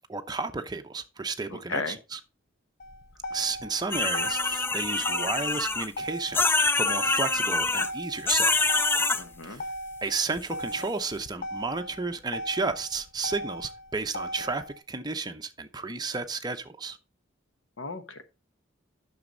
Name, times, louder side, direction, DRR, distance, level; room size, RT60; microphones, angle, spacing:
voice 1, 0.0-2.2 3.3-8.5 9.4-9.6 10.0-17.0, right 4 dB, 20° right, 0.7 m, -32 dB
voice 2, 1.5-2.0 9.2-9.6 17.8-18.2, left 4 dB, 75° left, 1.1 m, -35 dB
Motor vehicle (road), 2.8-14.8, equal, 50° left, 0.7 m, -38 dB
sound 1, 3.9-5.9 6.3-7.9 8.3-9.2, left 3 dB, 10° left, 0.3 m, -25 dB
9.3 x 6.3 x 3.9 m
head